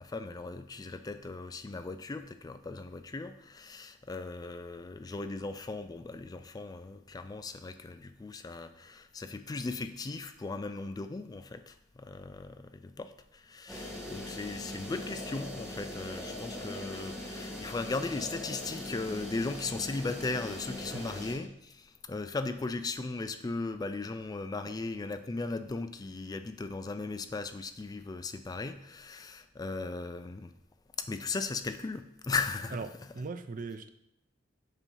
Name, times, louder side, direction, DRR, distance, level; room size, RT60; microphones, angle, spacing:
voice 1, 0.0-30.5 31.0-32.9, left 3 dB, 20° left, 10 dB, 0.3 m, -37 dB
sound 1, 13.7-21.4, left 1 dB, ahead, 1.1 m, -41 dB
voice 2, 33.1-33.9, right 4 dB, 45° right, 10 dB, 0.4 m, -38 dB
7.2 x 2.7 x 5.4 m, 0.78 s
head